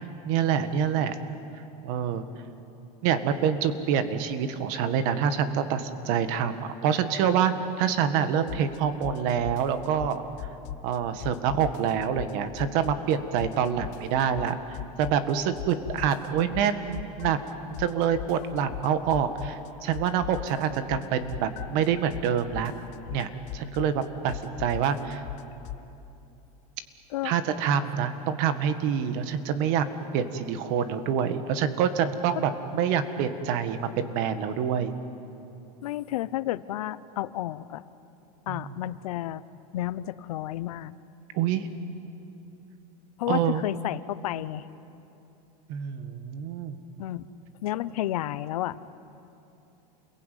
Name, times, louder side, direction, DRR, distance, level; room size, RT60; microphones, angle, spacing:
voice 1, 0.3-1.2 1.8-2.2 3.0-10.2 10.8-17.4 17.8-22.7 23.1-25.2 27.2-29.8 30.1-34.9 38.5-38.6 41.3-41.7 43.3-43.6 45.7-46.8, right 8 dB, 45° right, 10 dB, 1.8 m, -26 dB
sound 1, 8.5-8.8 9.0-10.9 11.2-13.1 13.4-15.3 15.6-19.7 19.9-25.8, left 12 dB, 40° left, 1.0 m, -38 dB
voice 2, 35.8-37.8 38.5-39.4 39.7-40.9 43.2-44.6 47.0-47.2 47.6-48.8, left 14 dB, 85° left, 15 dB, 1.0 m, -31 dB
29.0 x 21.5 x 9.4 m, 2.9 s
supercardioid pair, 160°, 19 cm